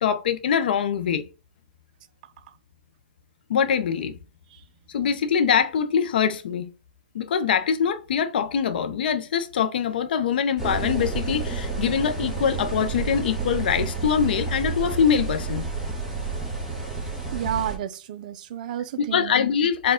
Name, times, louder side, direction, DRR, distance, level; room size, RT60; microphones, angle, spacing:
voice 1, 0.0-1.3 3.5-4.2 4.9-6.7 7.1-15.7 19.0-19.9, left 7 dB, 65° left, 0.5 m, -23 dB
sound 1, 10.6-17.8, right 4 dB, 5° right, 0.9 m, -30 dB
voice 2, 17.3-19.4, right 10 dB, 50° right, 0.5 m, -31 dB
4.3 x 2.3 x 3.6 m
hypercardioid pair, 150°, 5 cm